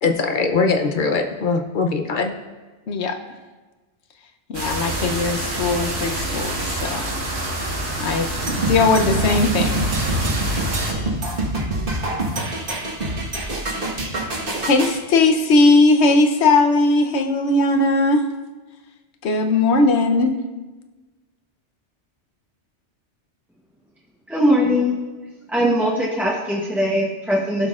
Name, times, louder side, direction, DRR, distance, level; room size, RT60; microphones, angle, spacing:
voice 1, 0.0-2.3, left 4 dB, 55° left, 6 dB, 0.6 m, -21 dB
voice 2, 2.9-3.2 4.5-7.1 8.0-8.3 8.5-9.8 14.6-18.2 19.2-20.4, left 3 dB, 70° left, 6 dB, 1.0 m, -18 dB
sound 1, 4.5-10.9, right 1 dB, 65° right, 1.7 m, -27 dB
sound 2, 8.5-15.0, right 1 dB, 50° right, 1.5 m, -25 dB
voice 3, 24.3-25.0 25.5-27.7, equal, ahead, -4 dB, 0.7 m, -20 dB
17.0 x 6.2 x 2.4 m, 1.3 s
omnidirectional pair, 1.2 m